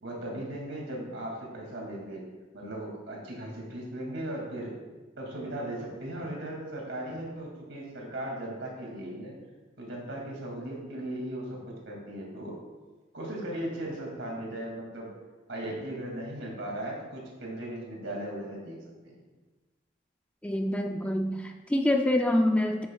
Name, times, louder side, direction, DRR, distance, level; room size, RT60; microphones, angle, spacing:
voice 1, 0.0-2.2 2.5-4.8 5.2-9.3 9.8-12.6 13.1-15.1 15.5-19.2, right 1 dB, 70° right, -1 dB, 2.3 m, -37 dB
voice 2, 20.4-22.8, left 1 dB, 5° left, 3 dB, 0.3 m, -26 dB
9.7 x 8.1 x 2.3 m, 1.2 s
head